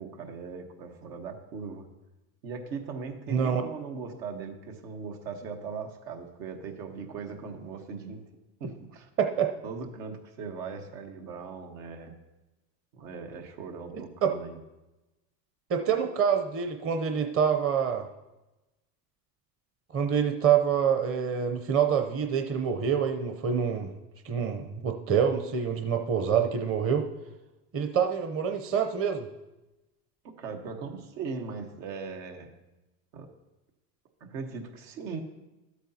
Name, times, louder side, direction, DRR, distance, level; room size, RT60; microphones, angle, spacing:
voice 1, 0.0-1.9 2.4-8.2 8.6-9.1 9.6-12.1 12.9-14.6 30.2-32.5 33.1-33.3 34.2-35.2, right 5 dB, 80° right, 4 dB, 1.4 m, -39 dB
voice 2, 3.3-3.6 9.2-9.5 13.9-14.3 15.7-18.1 19.9-23.9 24.2-27.1 27.7-29.3, right 7 dB, 30° right, 5 dB, 0.7 m, -26 dB
13.0 x 8.2 x 2.8 m, 1.0 s
hypercardioid pair, 90°, 49 cm